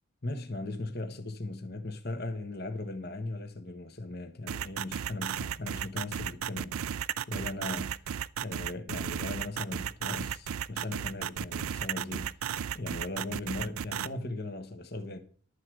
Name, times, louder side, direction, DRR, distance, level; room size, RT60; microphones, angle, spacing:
voice 1, 0.2-8.1 8.4-12.4 12.7-15.2, left 2 dB, 50° left, 1.3 m, -38 dB
sound 1, 4.5-14.1, right 9 dB, 85° right, 0.4 m, -34 dB
12.0 x 4.8 x 7.6 m
head